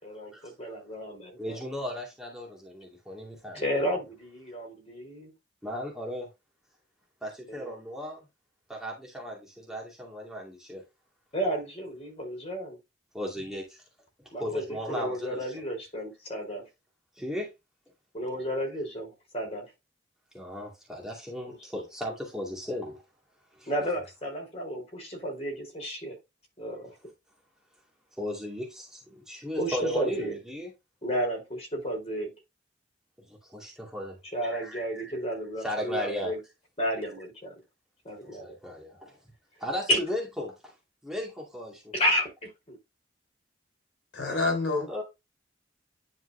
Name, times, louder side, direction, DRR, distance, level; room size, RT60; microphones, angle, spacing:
voice 1, 0.0-1.6 3.5-5.3 7.5-7.7 11.3-12.8 14.3-16.6 18.1-19.6 21.5-21.6 23.7-26.2 26.6-26.9 29.6-30.3 31.0-32.3 34.3-36.4 36.8-37.5 38.0-38.5 39.9-40.0 41.9-42.3 42.7-42.8, equal, 35° left, 4.3 m, -32 dB
voice 2, 1.4-3.6 5.6-6.3 7.2-8.2 8.7-10.8 13.1-13.8 14.4-15.6 17.2-17.5 20.3-23.0 23.5-23.9 28.2-30.7 33.2-34.2 34.4-35.1 35.6-36.3 38.2-39.2 39.6-40.7 41.0-41.9 44.9-45.0, equal, 5° right, 2.3 m, -36 dB
voice 3, 44.1-45.0, left 3 dB, 70° left, 4.4 m, -28 dB
10.5 x 4.5 x 2.8 m
head